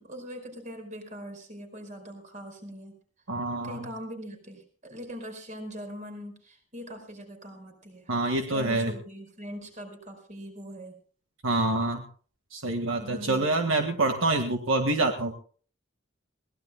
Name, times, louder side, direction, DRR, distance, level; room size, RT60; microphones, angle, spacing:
voice 1, 0.0-3.0 3.6-8.1 8.5-11.0 13.0-13.5, equal, 35° right, 5 dB, 4.8 m, -41 dB
voice 2, 3.3-3.8 8.1-8.9 11.4-12.0 12.5-15.3, right 2 dB, 70° right, 5 dB, 1.8 m, -26 dB
22.5 x 18.5 x 2.3 m, 0.41 s
head